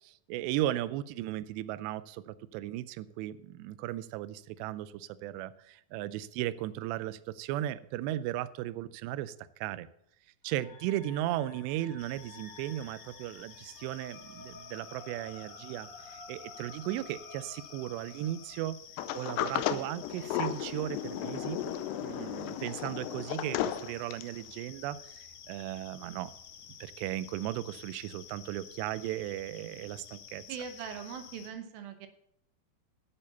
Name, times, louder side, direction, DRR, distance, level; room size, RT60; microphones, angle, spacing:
voice 1, 0.0-9.3 9.6-9.9 10.4-18.8 19.1-21.6 22.0-26.3 26.8-30.4, right 13 dB, 85° right, 15 dB, 2.7 m, -36 dB
sound 1, 10.5-18.6, left 3 dB, 45° left, 2.9 m, -52 dB
sound 2, 12.0-31.5, left 8 dB, 70° left, 1.8 m, -52 dB
Sliding door, 19.0-24.4, left 11 dB, 90° left, 2.8 m, -34 dB
voice 2, 30.5-32.1, right 7 dB, 70° right, 7 dB, 2.6 m, -41 dB
10.0 x 8.6 x 6.8 m, 0.74 s
omnidirectional pair, 4.9 m